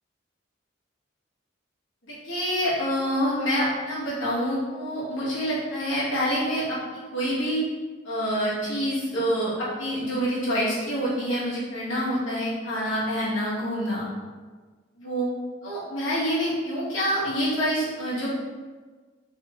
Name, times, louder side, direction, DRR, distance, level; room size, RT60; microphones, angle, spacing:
voice 1, 2.0-7.6 8.0-14.0 15.0-15.3 15.6-18.3, equal, 75° left, -8 dB, 1.3 m, -27 dB
3.4 x 3.4 x 2.9 m, 1.4 s
head